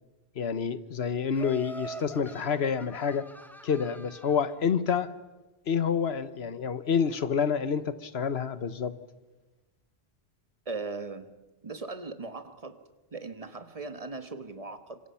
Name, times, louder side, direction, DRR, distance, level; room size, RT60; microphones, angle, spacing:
voice 1, 0.4-3.2 3.6-5.1 5.7-8.9, left 6 dB, 70° left, 13 dB, 1.3 m, -28 dB
Laughter, 1.3-4.6, right 1 dB, ahead, 1.5 m, -44 dB
voice 2, 10.7-11.3 11.6-12.8 13.1-15.0, right 3 dB, 35° right, 9 dB, 1.4 m, -38 dB
25.5 x 25.5 x 5.7 m, 1.2 s
omnidirectional pair, 1.1 m